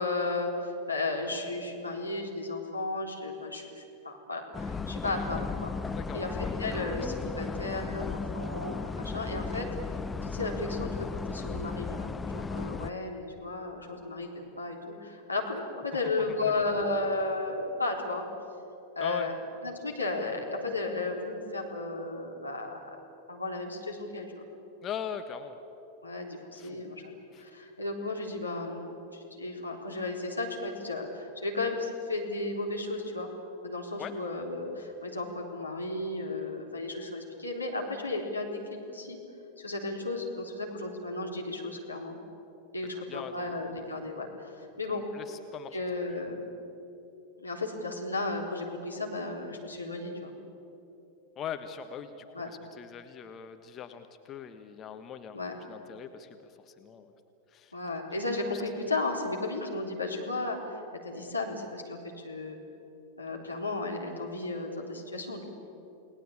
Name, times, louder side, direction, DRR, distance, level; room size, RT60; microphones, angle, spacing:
voice 1, 0.0-5.7 6.1-9.7 10.2-18.2 19.0-19.3 19.6-23.0 23.3-24.5 26.0-33.3 33.6-38.6 38.9-39.2 39.6-42.2 42.7-45.0 45.7-46.4 47.4-50.3 52.3-52.5 55.3-55.5 57.7-62.6 63.2-65.4, left 2 dB, 85° left, 0 dB, 3.7 m, -34 dB
sound 1, 4.5-12.9, left 4 dB, 10° left, 0.7 m, -35 dB
voice 2, 24.8-25.6 26.5-26.8 27.3-27.5 34.0-34.1 43.1-43.5 44.9-45.8 51.4-55.4 55.7-56.3 56.7-57.1 57.5-57.7, left 8 dB, 30° left, 7 dB, 1.3 m, -41 dB
29.5 x 19.0 x 8.7 m, 3.0 s
figure-of-eight pair, 90°, 0 cm